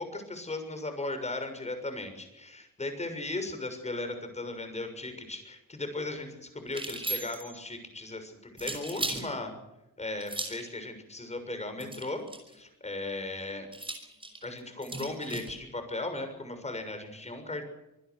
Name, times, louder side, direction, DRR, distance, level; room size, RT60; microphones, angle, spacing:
voice 1, 0.0-9.5 10.0-12.2 12.5-13.7 14.4-17.7, left 2 dB, 20° left, 8 dB, 6.7 m, -37 dB
sound 1, 6.7-7.6 8.6-9.3 10.2-10.7 11.8-12.6 13.7-15.5, right 2 dB, 15° right, 6.1 m, -36 dB
26.0 x 21.0 x 6.3 m, 0.90 s
cardioid pair, 130°, 33 cm